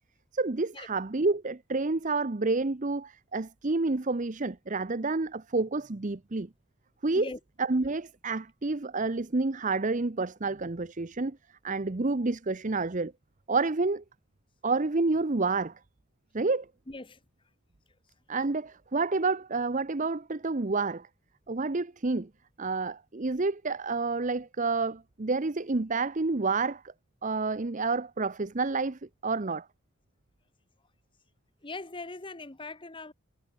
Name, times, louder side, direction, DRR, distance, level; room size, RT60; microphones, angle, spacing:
voice 1, 0.3-6.5 7.0-7.3 7.6-11.4 11.6-13.1 13.5-14.0 14.6-15.7 16.3-16.7 18.3-21.1 21.5-22.3 22.6-26.8 27.2-29.7, right 3 dB, 35° right, 0.7 m, -29 dB
voice 2, 16.9-17.2 31.6-33.1, left 3 dB, 20° left, 1.0 m, -40 dB
head